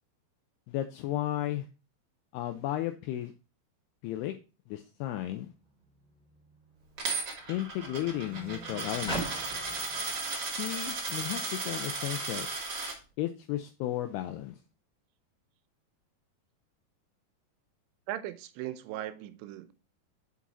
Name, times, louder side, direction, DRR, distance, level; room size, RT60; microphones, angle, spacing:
voice 1, 0.7-1.7 2.3-3.3 4.0-4.3 4.7-5.5 7.5-9.3 10.6-12.5 13.2-14.6, left 13 dB, 85° left, 2.4 m, -34 dB
Car, 5.5-12.1 12.9-13.0, right 2 dB, ahead, 1.5 m, -44 dB
Coin (dropping), 7.0-12.9, right 3 dB, 65° right, 1.0 m, -35 dB
voice 2, 18.1-19.7, right 13 dB, 90° right, 3.0 m, -38 dB
6.1 x 6.1 x 4.0 m
omnidirectional pair, 5.0 m